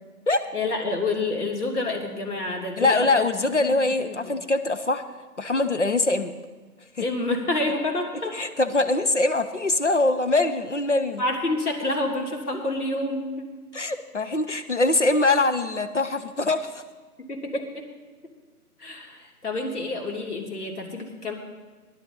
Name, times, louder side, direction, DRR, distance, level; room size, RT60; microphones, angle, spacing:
voice 1, 0.5-3.3 3.6-4.3 7.0-8.4 11.2-13.5 17.2-17.8 18.8-21.3, left 2 dB, 70° left, 1 dB, 3.1 m, -28 dB
voice 2, 2.8-5.0 5.4-6.3 6.9-7.1 8.3-11.2 13.7-16.8, left 2 dB, 50° left, 9 dB, 0.9 m, -23 dB
19.5 x 11.5 x 4.0 m, 1.3 s
figure-of-eight pair, 180°, 47 cm